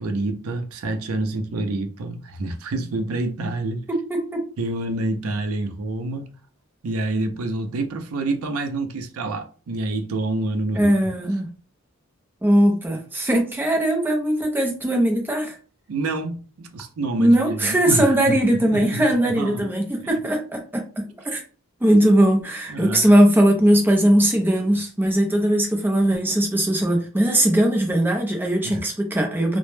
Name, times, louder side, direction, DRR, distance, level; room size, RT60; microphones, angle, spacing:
voice 1, 0.0-3.8 4.6-6.3 6.8-10.9 15.9-18.3 18.6-19.1 19.4-19.7 22.7-23.1 28.6-28.8, right 2 dB, 85° right, 0.5 m, -27 dB
voice 2, 3.9-4.4 10.7-11.5 12.4-15.6 17.2-21.4 21.8-29.6, right 1 dB, 10° right, 0.4 m, -19 dB
2.0 x 2.0 x 3.1 m
head